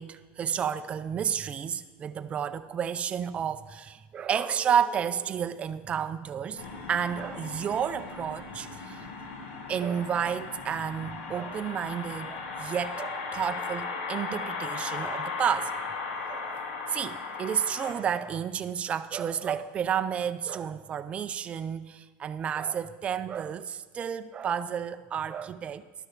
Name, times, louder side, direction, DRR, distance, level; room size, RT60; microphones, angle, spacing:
voice 1, 0.0-9.1 9.7-15.8 16.3-16.6 16.9-25.9, right 8 dB, 20° right, 0.3 m, -31 dB
sound 1, 6.6-17.9, left 4 dB, 85° left, 1.4 m, -37 dB
11.0 x 6.5 x 6.1 m
cardioid pair, 165°, 6 cm